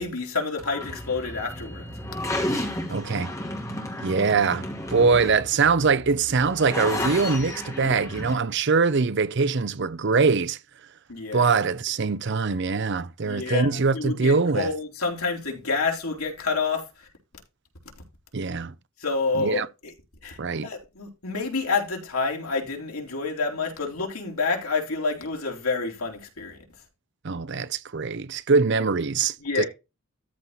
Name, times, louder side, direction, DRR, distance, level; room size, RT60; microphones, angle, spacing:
voice 1, 0.0-1.9 11.1-11.5 13.2-16.9 19.0-19.9 20.2-20.4 20.6-26.6 29.4-29.7, left 4 dB, 85° left, 3.5 m, -28 dB
sound 1, 0.6-8.3, left 1 dB, 15° left, 2.6 m, -32 dB
voice 2, 2.9-3.3 4.0-10.6 11.3-14.7 18.3-18.7 19.3-19.7 20.4-20.7 27.2-29.6, right 4 dB, 55° right, 0.6 m, -23 dB
13.5 x 4.5 x 4.0 m
head